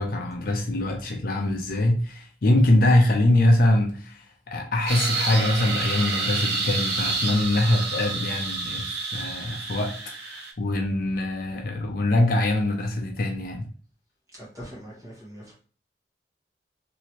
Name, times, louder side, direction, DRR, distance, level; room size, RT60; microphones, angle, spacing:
voice 1, 0.0-8.9 9.1-9.9 10.2-13.7, left 1 dB, 50° left, 0.5 m, -23 dB
sound 1, 4.9-10.5, right 3 dB, 65° right, 0.6 m, -29 dB
voice 2, 14.3-15.5, equal, 20° right, 1.2 m, -42 dB
3.0 x 2.7 x 2.9 m
head